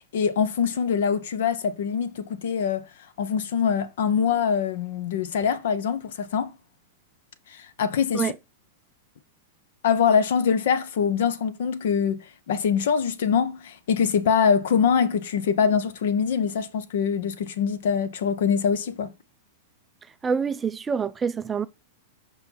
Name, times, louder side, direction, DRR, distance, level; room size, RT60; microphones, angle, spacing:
voice 1, 0.0-2.8 3.2-6.5 7.5-8.3 9.8-19.1, left 7 dB, 55° left, 0.9 m, -24 dB
voice 2, 20.2-21.7, right 6 dB, 15° right, 0.4 m, -26 dB
5.7 x 5.5 x 4.2 m
figure-of-eight pair, 95°, 0 cm